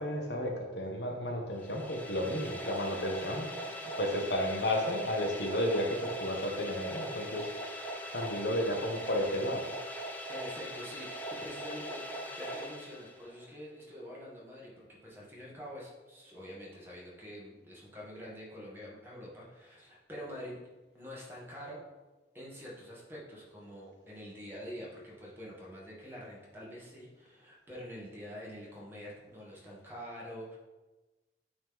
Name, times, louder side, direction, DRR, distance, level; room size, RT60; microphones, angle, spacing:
voice 1, 0.0-3.5 4.0-7.5 8.1-9.7, left 1 dB, 70° left, 2 dB, 0.9 m, -32 dB
sound 1, 1.5-13.5, equal, 10° left, 0.5 m, -41 dB
voice 2, 10.0-20.6 20.9-21.8 22.3-30.6, equal, 10° right, -5 dB, 1.3 m, -46 dB
8.8 x 3.1 x 3.6 m, 1.2 s
head